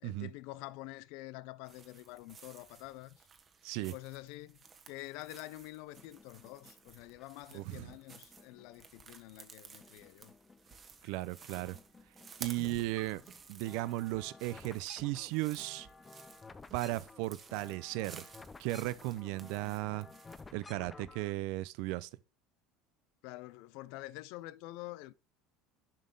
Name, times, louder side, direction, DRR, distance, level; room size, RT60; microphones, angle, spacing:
voice 1, 0.0-3.3 3.8-4.6 4.9-10.3 23.2-25.1, left 18 dB, 70° left, 0.4 m, -47 dB
sound 1, 1.6-20.5, right 5 dB, 30° right, 1.2 m, -55 dB
voice 2, 3.6-3.9 7.5-7.9 11.0-11.8 12.4-13.2 13.5-15.9 16.7-18.3 18.6-20.1 20.5-22.1, right 18 dB, 75° right, 0.5 m, -36 dB
sound 2, 6.0-7.5 7.9-9.5 9.8-11.1 11.4-21.3, left 3 dB, 20° left, 0.6 m, -55 dB
sound 3, 9.9-10.9 11.6-12.6 13.3-14.3 15.0-16.1 16.7-16.8, right 7 dB, 45° right, 1.5 m, -63 dB
7.3 x 5.4 x 3.8 m
supercardioid pair, 105°, 0 cm